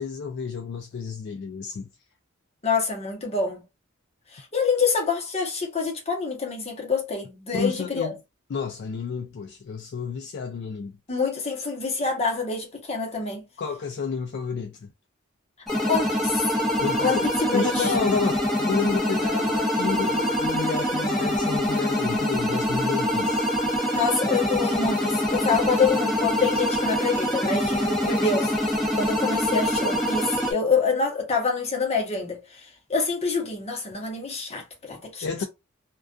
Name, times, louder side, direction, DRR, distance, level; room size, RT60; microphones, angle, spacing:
voice 1, 0.0-1.9 7.5-8.2 8.5-11.0 13.6-14.9 16.8-23.4 35.2-35.4, left 5 dB, 55° left, 0.3 m, -30 dB
voice 2, 2.6-3.6 4.3-8.1 11.1-13.4 15.9-16.4 17.0-17.2 17.5-17.9 23.9-28.7 29.0-32.4 32.9-35.2, left 4 dB, 30° left, 0.9 m, -26 dB
sound 1, 15.7-30.5, equal, ahead, 0.7 m, -25 dB
2.3 x 2.2 x 2.4 m
head